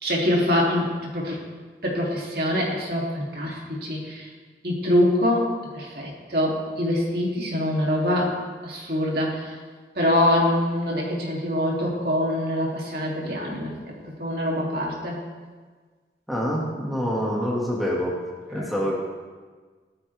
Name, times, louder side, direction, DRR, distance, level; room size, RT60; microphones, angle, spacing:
voice 1, 0.0-0.9 1.1-1.4 1.8-4.3 4.6-5.4 5.7-8.3 8.6-9.5 9.9-13.9 14.2-15.2 18.5-18.7, left 1 dB, 55° right, -3 dB, 3.2 m, -24 dB
voice 2, 16.3-18.2 18.5-18.9, equal, ahead, -5 dB, 2.2 m, -26 dB
17.0 x 14.0 x 3.6 m, 1.4 s
head